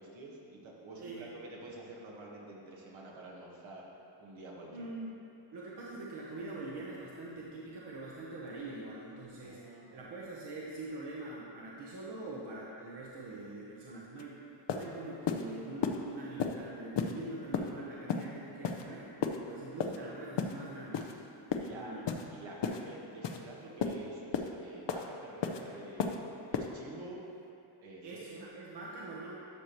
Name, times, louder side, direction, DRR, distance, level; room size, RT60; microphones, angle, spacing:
voice 1, 0.0-3.9 4.2-4.9 9.4-10.0 21.6-21.9 22.3-26.2 26.5-27.3 27.8-28.3, right 2 dB, 75° right, -3 dB, 1.5 m, -48 dB
voice 2, 1.0-1.3 4.7-5.2 5.5-14.4 14.7-19.1 19.5-21.2 21.7-22.1 28.0-29.4, right 2 dB, 60° right, -5 dB, 1.1 m, -44 dB
sound 1, 14.2-14.3 14.7-14.8 15.3-15.4 15.8-16.0 16.4-16.5 17.0-17.1 17.5-17.7 18.1-18.2 18.6-18.8 19.2-19.4 19.8-20.0 20.4-20.5 20.9-21.1 21.5-21.7 22.1-22.2 22.6-22.8 23.2-23.4 23.8-23.9 24.3-24.5 24.9-25.0 25.4-25.6 26.0-26.2 26.5-26.7, left 7 dB, 65° left, 0.7 m, -32 dB
12.0 x 6.6 x 3.0 m, 2.7 s
wide cardioid pair, 140°, 46 cm